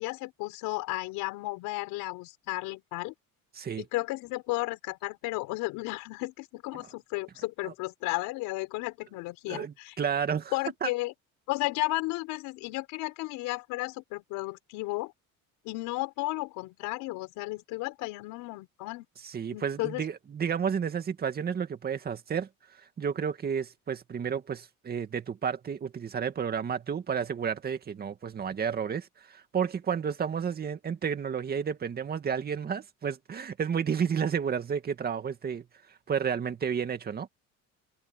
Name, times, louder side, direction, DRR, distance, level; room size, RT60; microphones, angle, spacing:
voice 1, 0.0-3.1 3.8-9.9 10.5-11.1 11.5-15.1 15.6-19.0 19.5-20.0, left 21 dB, 80° left, 4.6 m, -33 dB
voice 2, 9.5-10.5 10.8-10.9 19.2-22.5 23.0-35.6 36.1-37.3, right 7 dB, 30° right, 2.2 m, -31 dB
cardioid pair, 140°, 32 cm